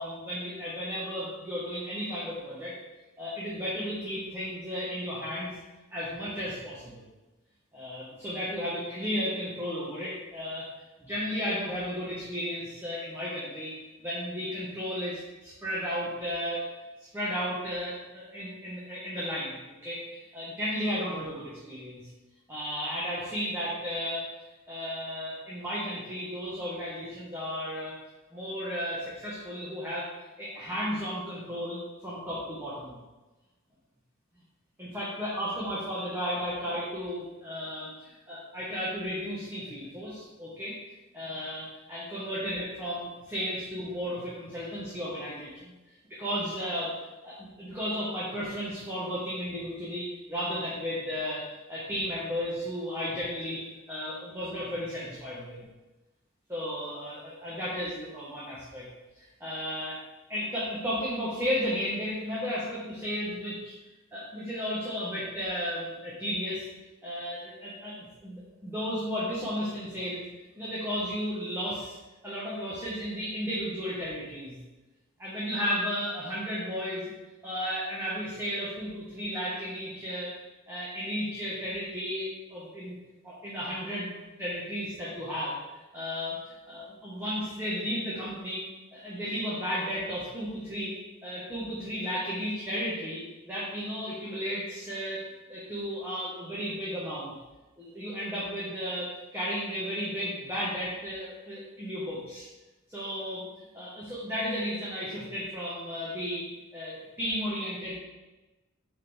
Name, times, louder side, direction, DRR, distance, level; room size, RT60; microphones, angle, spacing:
voice 1, 0.0-2.7 3.2-5.6 5.9-7.0 7.7-10.6 11.0-13.7 14.0-16.7 17.1-22.1 22.5-24.2 24.7-27.9 28.3-30.1 30.4-33.0 34.8-40.7 41.1-45.7 46.1-46.9 47.2-53.6 53.9-55.6 56.5-58.8 59.4-60.0 60.3-63.7 64.1-66.7 67.0-68.0 68.2-70.2 70.6-71.9 72.2-74.6 75.2-77.0 77.4-80.3 80.7-83.0 83.2-84.1 84.4-85.6 85.9-88.6 88.9-90.9 91.2-95.2 95.5-97.3 97.8-102.4 102.9-103.4 103.7-106.5 106.7-107.9, equal, 10° right, -8 dB, 1.3 m, -34 dB
6.6 x 5.4 x 3.4 m, 1.1 s
head